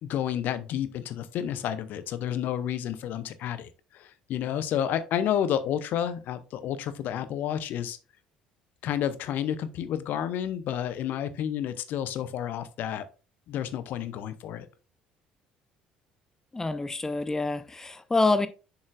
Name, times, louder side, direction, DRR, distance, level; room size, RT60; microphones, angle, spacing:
voice 1, 0.0-8.0 8.8-13.0 13.5-14.7, left 10 dB, 50° left, 0.7 m, -30 dB
voice 2, 16.5-18.5, left 3 dB, 15° left, 0.5 m, -26 dB
7.1 x 6.4 x 2.4 m
figure-of-eight pair, 55°, 4 cm